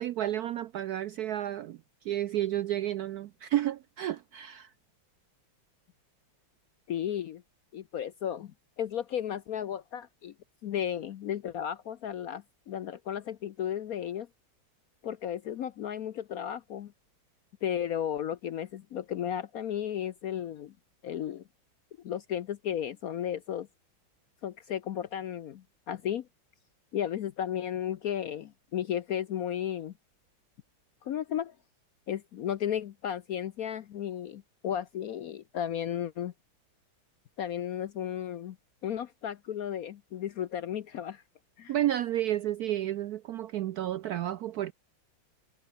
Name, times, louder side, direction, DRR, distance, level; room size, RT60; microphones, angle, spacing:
voice 1, 0.0-1.8 2.0-4.7 41.7-44.7, right 12 dB, 75° right, 0.9 m, -31 dB
voice 2, 6.9-7.4 7.7-10.3 10.6-14.3 15.0-16.9 17.6-20.7 21.0-21.4 22.0-23.7 24.4-26.3 26.9-29.9 31.0-31.6 32.1-36.3 37.4-38.6 38.8-41.2 41.6-41.7, left 10 dB, 65° left, 0.9 m, -34 dB
omnidirectional pair, 2.1 m